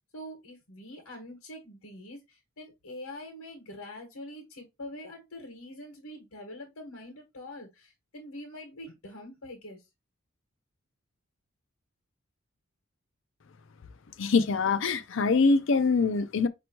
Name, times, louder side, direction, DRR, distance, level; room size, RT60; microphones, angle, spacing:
voice 1, 0.1-9.8, left 1 dB, 85° left, 1.4 m, -44 dB
voice 2, 14.2-16.5, left 4 dB, 60° left, 0.5 m, -24 dB
5.2 x 3.0 x 2.9 m
head